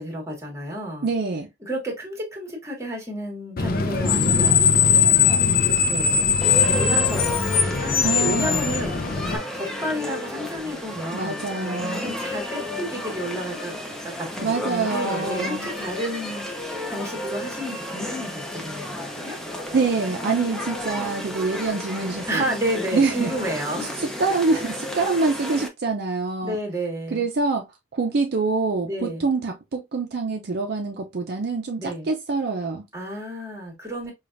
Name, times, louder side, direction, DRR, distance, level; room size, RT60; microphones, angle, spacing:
voice 1, 0.0-1.1 1.6-4.6 5.7-8.9 9.2-11.4 12.0-13.8 14.0-19.4 22.3-23.9 26.4-27.2 28.8-29.3 31.8-32.1 32.9-34.1, equal, 15° right, 1.3 m, -31 dB
voice 2, 1.0-1.5 8.0-8.7 11.1-12.2 14.4-15.7 19.7-22.4 22.9-23.3 24.0-26.6 27.1-27.7 27.9-32.8, right 3 dB, 60° right, 0.5 m, -25 dB
Screech, 3.6-9.4, left 6 dB, 50° left, 0.5 m, -20 dB
sound 1, 6.4-25.7, left 1 dB, 5° left, 0.6 m, -32 dB
5.0 x 2.4 x 2.5 m
head